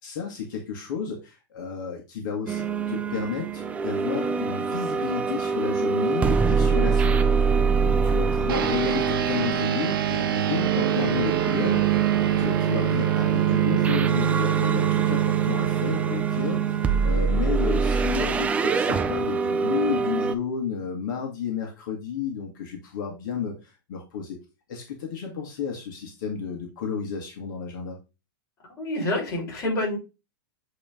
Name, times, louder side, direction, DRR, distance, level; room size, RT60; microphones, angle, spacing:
voice 1, 0.0-11.8 12.4-16.6 17.0-24.4 24.7-28.0, left 6 dB, 65° left, 0 dB, 1.8 m, -32 dB
sound 1, 2.5-20.3, right 5 dB, 10° right, 0.4 m, -25 dB
sound 2, 8.5-18.2, right 11 dB, 90° right, 0.9 m, -26 dB
voice 2, 28.8-30.0, left 1 dB, 25° left, -3 dB, 3.5 m, -27 dB
8.4 x 3.3 x 3.6 m, 0.27 s
supercardioid pair, 155°, 11 cm